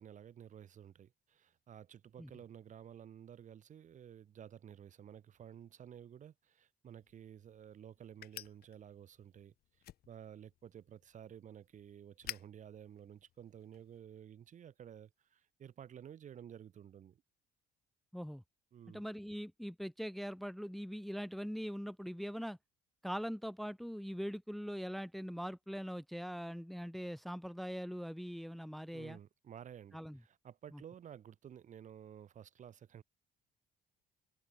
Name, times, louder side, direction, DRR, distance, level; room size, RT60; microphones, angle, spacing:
voice 1, 0.0-9.5 10.1-17.2 18.7-19.0 28.9-33.0, right 9 dB, 45° right, 1.7 m, -53 dB
sound 1, 6.8-14.0, left 13 dB, 65° left, 3.9 m, -54 dB
voice 2, 18.1-18.4 18.9-22.6 23.0-29.2 29.9-30.2 30.7-30.8, equal, ahead, 1.1 m, -42 dB
cardioid pair, 110°, 17 cm